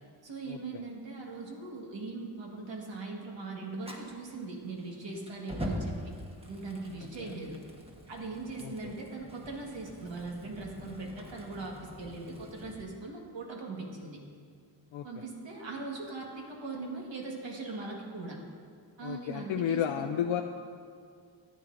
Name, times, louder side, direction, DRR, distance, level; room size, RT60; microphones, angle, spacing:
voice 1, 0.2-5.9 6.5-7.6 8.1-14.2 15.0-18.4 19.0-20.1, right 3 dB, 70° right, -1 dB, 1.7 m, -40 dB
Fire, 3.8-12.8, equal, 15° right, 1.2 m, -44 dB
voice 2, 19.0-20.4, left 9 dB, 85° left, 3 dB, 0.5 m, -32 dB
14.0 x 9.2 x 2.6 m, 2.2 s
wide cardioid pair, 90°, 45 cm